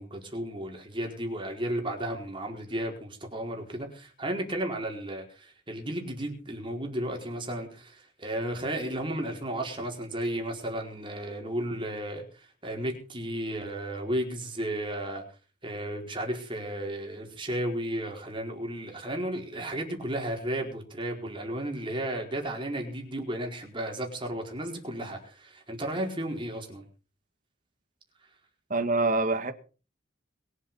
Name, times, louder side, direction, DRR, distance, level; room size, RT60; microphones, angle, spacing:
voice 1, 0.0-15.2 15.6-26.8, right 1 dB, 25° right, 4.6 m, -34 dB
voice 2, 28.7-29.5, right 3 dB, 40° right, 1.7 m, -25 dB
22.5 x 8.3 x 5.6 m
head